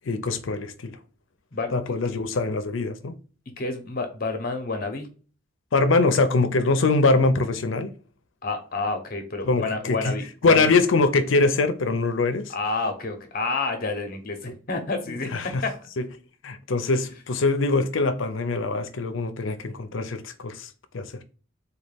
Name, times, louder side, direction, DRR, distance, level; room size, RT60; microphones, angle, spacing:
voice 1, 0.1-1.0 1.7-3.2 5.7-7.9 9.4-10.1 10.4-12.5 15.1-15.6 16.0-16.1 16.4-21.1, left 3 dB, 75° left, 0.5 m, -23 dB
voice 2, 1.5-2.2 3.6-5.1 8.4-10.7 12.5-15.3 15.6-15.7, left 3 dB, 45° left, 0.8 m, -29 dB
4.1 x 2.3 x 3.4 m
head